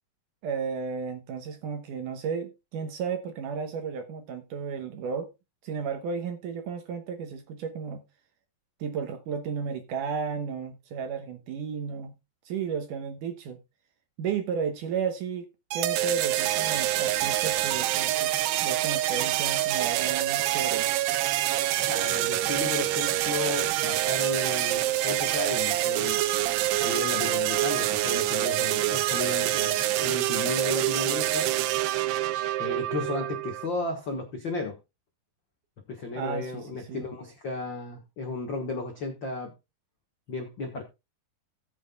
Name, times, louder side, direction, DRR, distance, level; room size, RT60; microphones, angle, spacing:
voice 1, 0.4-5.3 5.6-8.0 8.8-12.1 12.5-13.6 14.2-18.3 18.6-21.0 36.1-37.1, right 6 dB, 70° right, 2.2 m, -33 dB
sound 1, 15.7-33.7, right 15 dB, 85° right, 2.9 m, -26 dB
voice 2, 21.8-26.2 26.8-31.5 32.6-34.8 35.9-39.5 40.3-40.8, left 3 dB, 80° left, 1.0 m, -34 dB
18.0 x 7.6 x 2.3 m
omnidirectional pair, 4.7 m